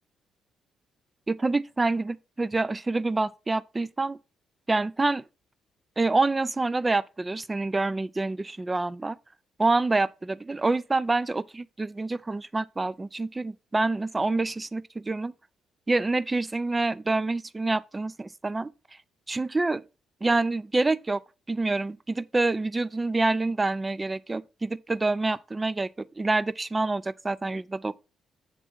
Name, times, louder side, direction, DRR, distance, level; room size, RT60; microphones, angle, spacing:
voice 1, 1.3-4.2 4.7-5.2 6.0-9.2 9.6-15.3 15.9-18.7 19.3-19.8 20.2-21.2 21.5-28.0, right 3 dB, 20° right, 0.4 m, -27 dB
7.3 x 3.4 x 5.3 m
cardioid pair, 90°, 0 cm